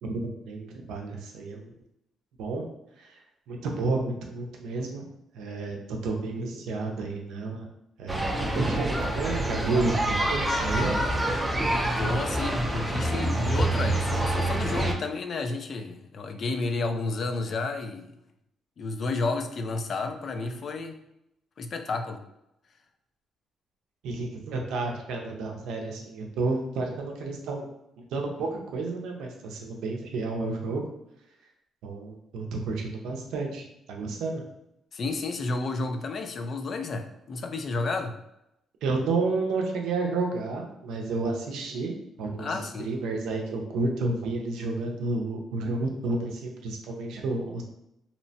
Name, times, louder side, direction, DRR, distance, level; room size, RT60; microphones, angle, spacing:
voice 1, 0.0-1.7 2.4-2.7 3.0-3.2 3.5-7.7 8.0-11.2 24.0-27.7 28.0-30.9 31.8-34.4 38.8-47.6, right 3 dB, 85° right, 1 dB, 0.5 m, -31 dB
sound 1, 8.1-14.9, right 1 dB, 15° right, 0.5 m, -26 dB
voice 2, 12.0-18.1 18.8-21.0 21.6-22.2 34.9-38.1 42.4-42.9, left 3 dB, 50° left, 6 dB, 0.4 m, -31 dB
2.8 x 2.1 x 2.7 m, 0.82 s
cardioid pair, 90°, 0 cm